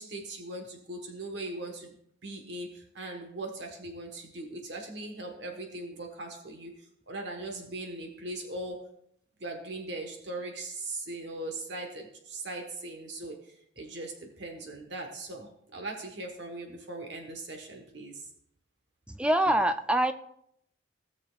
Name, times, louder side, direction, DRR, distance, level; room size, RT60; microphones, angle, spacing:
voice 1, 0.0-2.0 2.2-6.7 7.1-8.9 9.4-18.3 19.5-19.6, right 2 dB, 60° right, 2 dB, 1.2 m, -39 dB
voice 2, 19.2-20.1, right 1 dB, 5° right, 9 dB, 0.3 m, -24 dB
16.5 x 6.7 x 2.4 m, 0.73 s
head